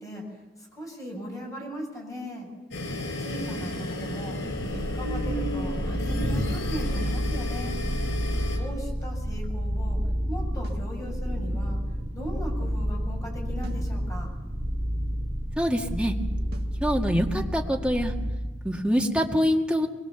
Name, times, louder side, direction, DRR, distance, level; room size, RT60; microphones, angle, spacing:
voice 1, 0.0-2.5 3.2-7.8 8.6-10.0 10.3-11.8 12.1-14.3, equal, 20° left, 0 dB, 6.9 m, -38 dB
sound 1, 2.7-8.6, left 1 dB, 90° left, 6.1 m, -32 dB
sound 2, 4.5-18.4, equal, 30° right, 2.7 m, -30 dB
sound 3, 10.6-10.9 13.6-13.9 16.5-16.8, right 1 dB, 55° right, 1.8 m, -44 dB
voice 2, 15.6-16.2 16.8-18.1 18.6-19.9, equal, 5° right, 1 dB, 2.0 m, -25 dB
23.5 x 22.0 x 7.0 m, 1.2 s
head